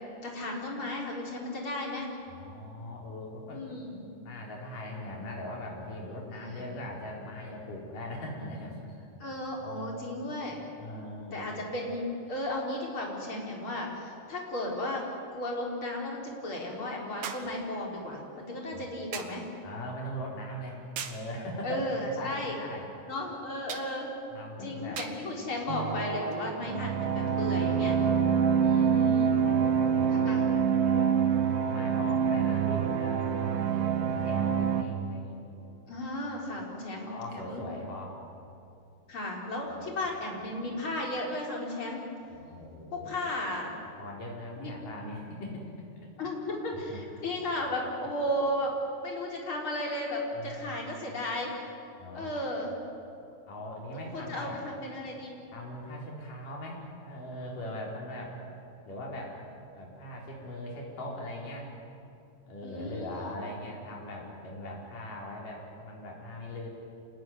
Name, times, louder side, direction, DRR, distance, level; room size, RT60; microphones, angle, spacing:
voice 1, 0.2-2.1 3.5-4.0 6.3-6.7 9.2-10.6 11.3-15.0 15.3-19.5 21.6-22.6 23.1-24.1 24.6-28.0 28.6-29.3 30.1-30.4 35.9-37.7 39.1-42.0 42.9-43.8 44.6-44.7 46.2-48.8 49.0-51.5 52.1-52.7 54.1-55.3 62.6-63.3, left 1 dB, 35° left, -1 dB, 4.9 m, -34 dB
voice 2, 2.3-3.6 4.2-9.3 9.6-10.3 10.8-11.6 18.7-18.9 19.6-22.9 24.3-25.0 28.2-29.0 29.4-31.2 31.6-35.4 36.6-36.8 37.0-38.2 39.7-40.7 42.3-43.2 44.0-45.6 46.0-46.1 46.7-47.2 47.5-47.7 50.3-51.2 52.0-52.3 53.5-54.6 55.5-58.4 58.9-59.4 59.7-61.7 62.5-66.7, left 1 dB, 70° left, -2 dB, 6.0 m, -41 dB
sound 1, 13.4-13.5 17.2-17.6 19.1-19.4 21.0-21.3 23.7-23.9 25.0-25.2 26.3-26.4, right 7 dB, 55° right, 2.0 m, -39 dB
sound 2, 25.7-34.8, right 7 dB, 80° right, 3.0 m, -26 dB
27.5 x 20.0 x 9.6 m, 2.6 s
omnidirectional pair, 3.9 m